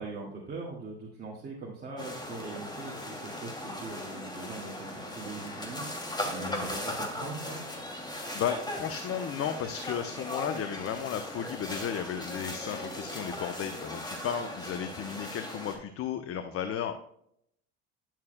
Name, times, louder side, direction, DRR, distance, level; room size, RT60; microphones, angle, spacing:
voice 1, 0.0-7.6, right 3 dB, 30° right, -4 dB, 2.1 m, -41 dB
sound 1, 2.0-15.8, left 1 dB, 10° left, 2.5 m, -38 dB
voice 2, 8.3-17.0, left 8 dB, 45° left, 9 dB, 0.8 m, -34 dB
10.5 x 7.4 x 2.2 m, 0.70 s
hypercardioid pair, 70°, 33 cm